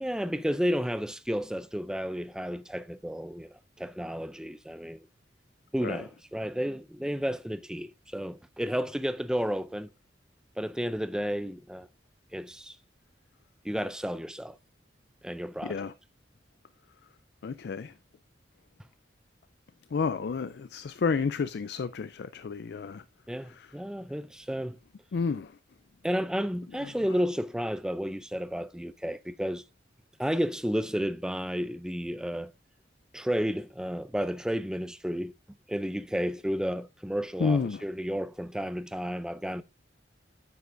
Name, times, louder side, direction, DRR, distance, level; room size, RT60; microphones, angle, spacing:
voice 1, 0.0-5.1 5.7-9.9 10.6-11.9 12.3-12.8 13.6-14.6 15.2-15.9 23.3-24.8 26.0-29.6 30.2-32.5 33.1-35.3 35.7-39.6, equal, 5° right, 0.4 m, -32 dB
voice 2, 15.6-15.9 17.4-17.9 19.9-23.0 25.1-25.5 37.4-37.8, left 5 dB, 65° left, 0.4 m, -30 dB
9.5 x 8.1 x 2.6 m
head